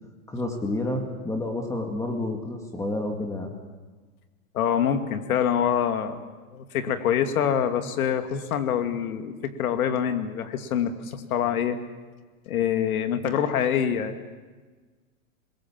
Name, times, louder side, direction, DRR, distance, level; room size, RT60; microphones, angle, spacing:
voice 1, 0.3-3.5, left 2 dB, 5° left, 3 dB, 2.1 m, -29 dB
voice 2, 4.5-6.2 6.5-11.8 12.5-14.2, left 8 dB, 85° left, 7 dB, 2.5 m, -25 dB
26.0 x 21.5 x 7.4 m, 1.4 s
supercardioid pair, 155°, 42 cm